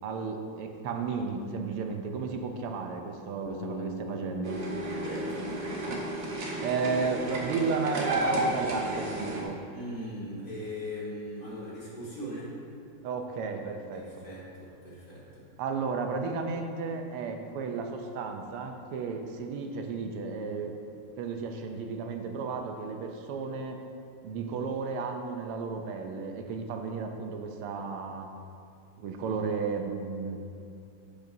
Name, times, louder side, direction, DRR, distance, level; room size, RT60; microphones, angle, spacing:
voice 1, 0.0-4.6 6.6-9.6 13.0-14.3 15.6-20.7 21.2-23.8 24.2-28.3 29.0-30.4, right 5 dB, 85° right, 4 dB, 1.6 m, -33 dB
Bass guitar, 3.5-7.5, right 1 dB, 60° left, 0.8 m, -41 dB
sound 1, 4.4-9.4, right 1 dB, 55° right, 1.5 m, -32 dB
voice 2, 5.0-5.7 9.7-12.6 13.9-15.4, equal, 40° left, -8 dB, 2.7 m, -39 dB
10.5 x 8.1 x 2.7 m, 2.4 s
omnidirectional pair, 2.4 m